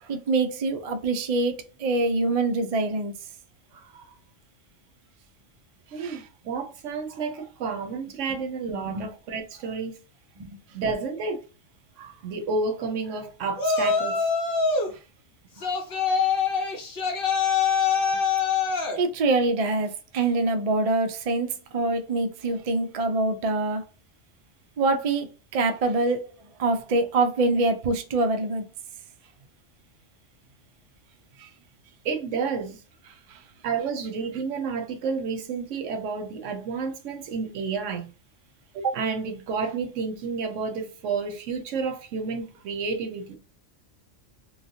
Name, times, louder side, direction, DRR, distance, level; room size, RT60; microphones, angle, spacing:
voice 1, 0.0-3.1 6.0-6.2 8.7-9.1 10.4-10.5 19.0-23.8 24.8-26.3 26.6-28.6 31.4-31.5 33.3-33.4, right 2 dB, 60° right, 0.4 m, -25 dB
voice 2, 3.7-4.0 5.9-10.0 10.7-11.4 12.0-14.3 15.6-15.7 15.9-16.1 32.0-32.8 33.6-38.1 38.7-43.4, right 5 dB, 85° right, 1.0 m, -30 dB
Yell, 13.6-14.9 15.6-19.0, left 5 dB, 55° left, 0.9 m, -24 dB
3.2 x 2.3 x 2.6 m
omnidirectional pair, 1.3 m